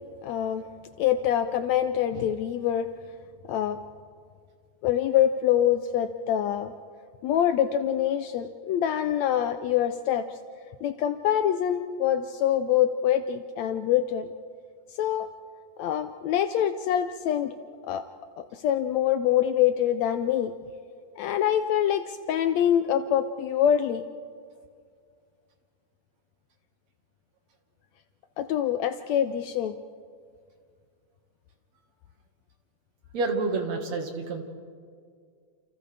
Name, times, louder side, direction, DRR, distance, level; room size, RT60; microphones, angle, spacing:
voice 1, 0.2-0.7 1.0-2.9 3.5-3.8 4.8-6.7 7.2-10.4 10.8-14.3 14.9-15.3 15.8-17.5 17.9-18.1 18.4-20.5 21.2-24.0 28.4-29.8, left 10 dB, 80° left, 8 dB, 1.6 m, -25 dB
voice 2, 33.1-34.4, right 3 dB, 60° right, 3 dB, 2.7 m, -28 dB
29.0 x 28.5 x 3.4 m, 2.1 s
omnidirectional pair, 3.7 m